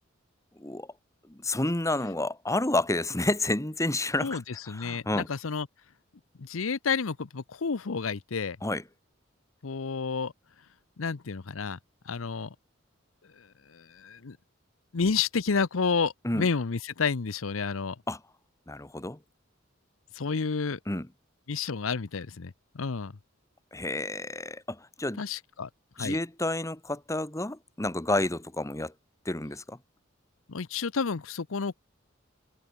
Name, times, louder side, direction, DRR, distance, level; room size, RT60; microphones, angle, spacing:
voice 1, 0.6-0.9 1.3-4.4 4.7-5.3 8.6-8.8 16.2-16.5 18.1-18.2 18.7-19.2 20.9-21.1 23.7-25.2 26.0-28.9 29.2-29.8, left 2 dB, 15° left, 1.5 m, -30 dB
voice 2, 4.2-5.7 6.4-8.6 9.6-10.3 11.0-11.8 12.0-12.5 13.3-14.4 14.9-18.0 20.1-20.8 21.5-23.1 25.2-25.7 26.0-26.2 30.5-31.7, left 5 dB, 85° left, 0.7 m, -30 dB
head